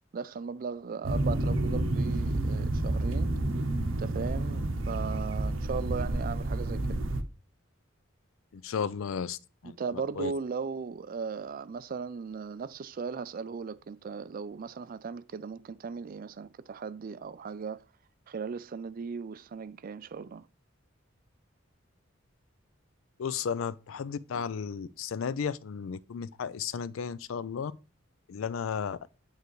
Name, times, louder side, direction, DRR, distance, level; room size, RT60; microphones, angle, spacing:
voice 1, 0.1-3.3 4.0-7.0 9.6-17.8 18.3-20.5, right 5 dB, 45° right, 0.3 m, -37 dB
sound 1, 1.0-7.2, right 1 dB, 70° right, 0.7 m, -29 dB
voice 2, 8.5-9.4 9.6-9.8 10.2-10.3 23.2-27.7 28.3-29.0, left 6 dB, 75° left, 0.4 m, -34 dB
9.1 x 3.3 x 3.1 m
head